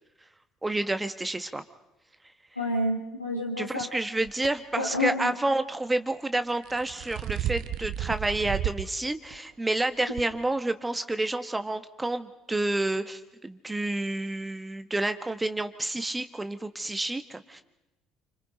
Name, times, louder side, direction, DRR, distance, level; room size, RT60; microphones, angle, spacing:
voice 1, 0.6-1.6 3.6-17.6, right 2 dB, 15° right, 9 dB, 1.5 m, -29 dB
voice 2, 2.6-3.9 4.8-5.3, left 1 dB, 90° left, -3 dB, 1.9 m, -29 dB
sound 1, 4.3-4.5 6.5-8.9 9.3-9.4 10.2-10.3, right 12 dB, 55° right, 1.1 m, -32 dB
29.0 x 26.5 x 5.3 m, 0.94 s
figure-of-eight pair, 55°, 0 cm